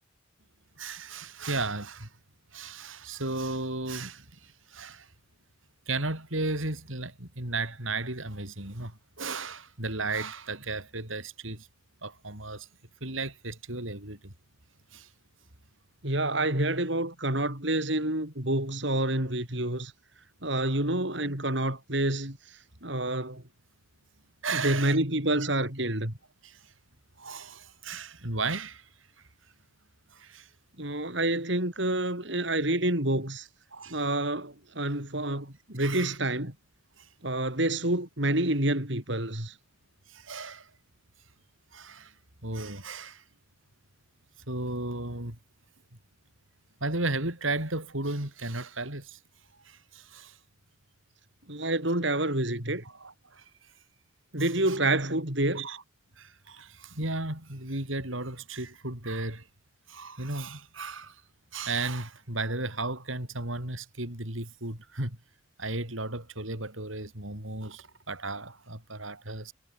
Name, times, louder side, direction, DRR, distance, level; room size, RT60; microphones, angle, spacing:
voice 1, 0.8-2.1 2.5-5.1 5.9-11.7 12.0-12.7 13.0-14.3 14.9-15.1 24.4-25.0 25.4-25.5 26.4-26.6 27.2-28.9 30.1-30.5 33.7-34.0 35.8-36.2 37.0-37.1 40.1-40.7 41.7-42.1 42.4-43.2 44.5-45.4 46.8-49.2 49.6-50.4 52.8-53.4 54.7-54.8 55.5-55.8 56.2-59.4 59.9-61.2 61.5-65.2 65.6-69.5, right 2 dB, 80° right, 6.6 m, -35 dB
voice 2, 16.0-19.9 20.4-23.4 24.5-26.1 30.8-33.5 33.9-36.5 37.2-39.6 51.5-52.8 54.3-55.7, right 1 dB, 60° right, 5.7 m, -28 dB
head